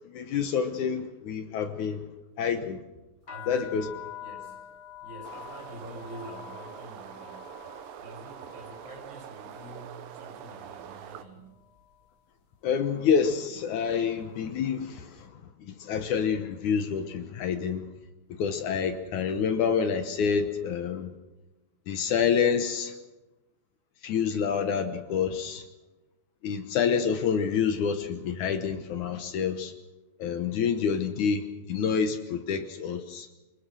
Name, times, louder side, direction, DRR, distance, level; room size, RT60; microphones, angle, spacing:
voice 1, 0.1-2.0 2.4-2.8 3.5-3.9 12.6-15.3 15.6-17.9 18.3-21.1 21.9-22.9 24.0-25.6 26.4-29.7 30.2-33.3, left 6 dB, 65° left, 9 dB, 2.2 m, -28 dB
sound 1, 3.2-11.1 11.4-12.1 12.7-13.0 13.3-14.7, left 11 dB, 45° left, 2.0 m, -47 dB
voice 2, 3.2-3.9 4.2-7.5 8.0-11.6, right 1 dB, 30° right, -1 dB, 7.1 m, -46 dB
sound 2, 5.2-11.2, right 9 dB, 75° right, 2.8 m, -44 dB
24.0 x 20.5 x 6.3 m, 1.0 s
omnidirectional pair, 4.3 m